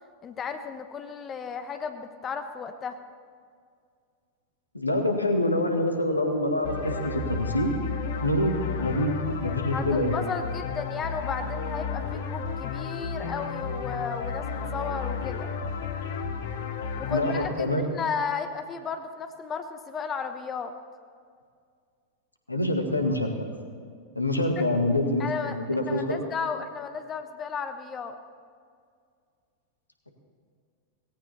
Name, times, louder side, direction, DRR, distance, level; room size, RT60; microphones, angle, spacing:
voice 1, 0.2-3.0 9.7-15.5 17.0-20.7 24.6-24.7 25.2-28.2, left 6 dB, 25° left, 8 dB, 1.0 m, -34 dB
voice 2, 4.7-7.7 8.2-9.2 9.4-10.1 17.1-17.9 22.5-23.5 24.2-26.2, left 1 dB, 85° left, 4 dB, 1.8 m, -26 dB
sound 1, 6.6-17.5, left 5 dB, 55° left, 1.3 m, -33 dB
18.0 x 17.0 x 4.2 m, 2.2 s
figure-of-eight pair, 90°, 0 cm